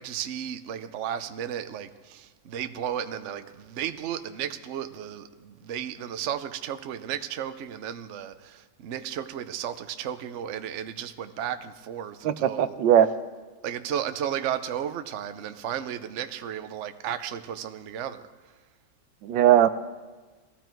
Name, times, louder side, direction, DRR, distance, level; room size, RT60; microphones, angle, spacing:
voice 1, 0.0-12.8 13.6-18.3, right 9 dB, 60° right, 0.7 m, -34 dB
voice 2, 12.2-13.1 19.2-19.7, right 11 dB, 80° right, 1.4 m, -19 dB
20.0 x 15.0 x 4.5 m
omnidirectional pair, 2.0 m